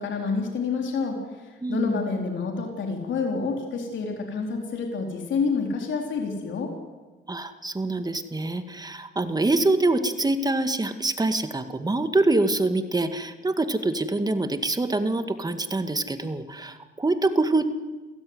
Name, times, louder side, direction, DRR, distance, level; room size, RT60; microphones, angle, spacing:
voice 1, 0.0-6.7, left 4 dB, 70° left, 3 dB, 4.1 m, -28 dB
voice 2, 1.6-2.0 7.3-17.7, right 2 dB, 20° right, 9 dB, 2.1 m, -25 dB
28.0 x 16.0 x 9.7 m, 1.3 s
cardioid pair, 90°, 20 cm